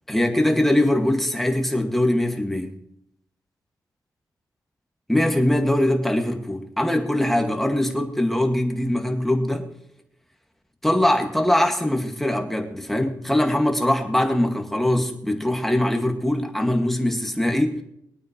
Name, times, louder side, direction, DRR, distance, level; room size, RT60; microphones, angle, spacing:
voice 1, 0.1-2.7 5.1-9.7 10.8-17.8, left 1 dB, 5° left, 3 dB, 2.1 m, -22 dB
23.0 x 9.0 x 3.2 m, 0.77 s
wide cardioid pair, 105°, 7 cm